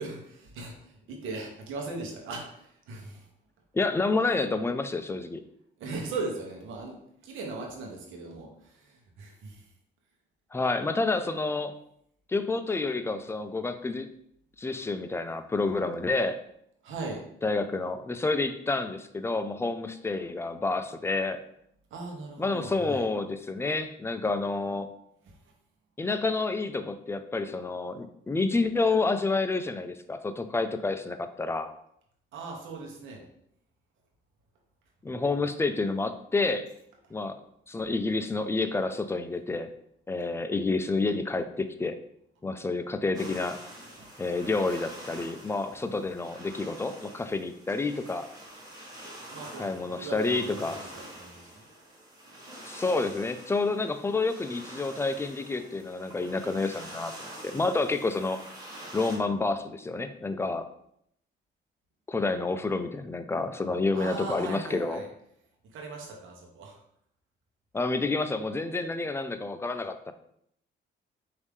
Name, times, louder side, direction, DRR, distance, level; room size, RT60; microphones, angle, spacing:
voice 1, 0.0-3.3 5.8-7.0 7.2-9.7 16.8-17.2 21.9-23.1 25.3-25.5 32.3-33.2 44.0-44.1 49.3-51.7 63.9-65.1 65.6-66.8, right 3 dB, 85° right, 0 dB, 1.0 m, -39 dB
voice 2, 3.7-5.4 10.5-11.7 12.3-14.1 14.6-16.4 17.4-21.4 22.4-24.9 26.0-31.7 35.0-36.7 37.1-37.4 37.7-39.7 40.1-42.0 42.4-43.6 44.2-48.3 49.6-50.8 52.7-57.1 57.4-58.4 58.9-60.7 62.1-65.0 67.7-70.1, left 3 dB, 15° left, 9 dB, 0.3 m, -29 dB
sound 1, 43.1-59.2, right 1 dB, 20° right, 1.4 m, -46 dB
4.7 x 2.7 x 3.5 m, 0.72 s
cardioid pair, 90°, 20 cm